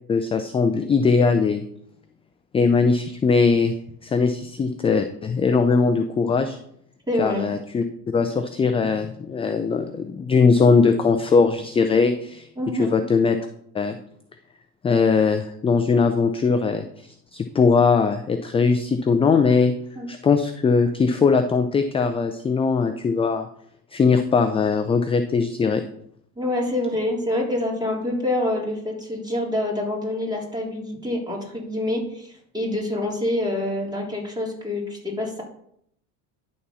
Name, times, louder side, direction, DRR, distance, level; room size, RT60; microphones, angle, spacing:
voice 1, 0.1-1.6 2.5-3.7 4.0-6.6 7.2-7.8 8.1-12.5 12.7-13.4 13.7-14.0 14.8-19.7 20.1-23.5 23.9-25.8, left 4 dB, 15° left, 8 dB, 0.3 m, -20 dB
voice 2, 7.1-7.5 12.6-13.0 20.0-20.1 26.4-35.4, left 1 dB, 10° right, -3 dB, 3.7 m, -26 dB
11.0 x 4.2 x 5.6 m, 0.69 s
supercardioid pair, 95°, 46 cm